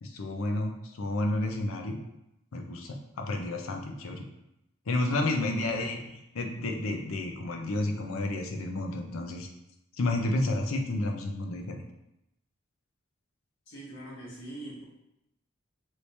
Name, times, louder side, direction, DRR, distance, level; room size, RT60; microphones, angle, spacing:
voice 1, 0.0-2.0 2.5-4.2 4.9-9.5 10.0-11.8, left 2 dB, 80° left, 3 dB, 0.5 m, -31 dB
voice 2, 5.1-5.5 13.7-14.8, right 1 dB, 65° left, -4 dB, 1.1 m, -43 dB
3.0 x 2.7 x 3.2 m, 0.85 s
head